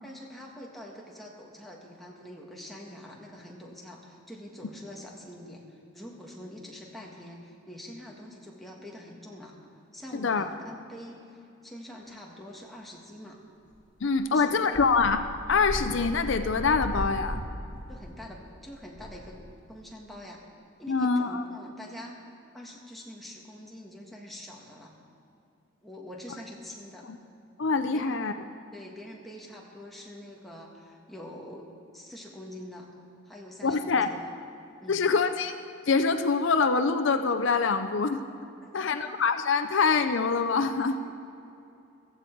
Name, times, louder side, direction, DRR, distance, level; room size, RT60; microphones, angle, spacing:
voice 1, 0.0-9.6 9.9-13.4 14.3-14.9 17.9-19.4 19.7-20.4 20.8-22.2 22.5-24.9 25.8-27.1 27.9-28.2 28.7-32.9 33.2-34.3 34.8-35.0 38.6-39.0, left 1 dB, ahead, -2 dB, 1.5 m, -45 dB
voice 2, 10.1-10.5 14.0-17.4 20.9-21.4 27.0-27.2 27.6-28.4 33.6-34.1 34.9-35.6 35.9-38.2 38.7-41.0, left 4 dB, 65° left, 9 dB, 0.5 m, -25 dB
sound 1, 13.7-13.8 14.1-14.2 14.7-19.9, equal, 20° left, 2.2 m, -37 dB
15.5 x 14.0 x 4.6 m, 2.7 s
head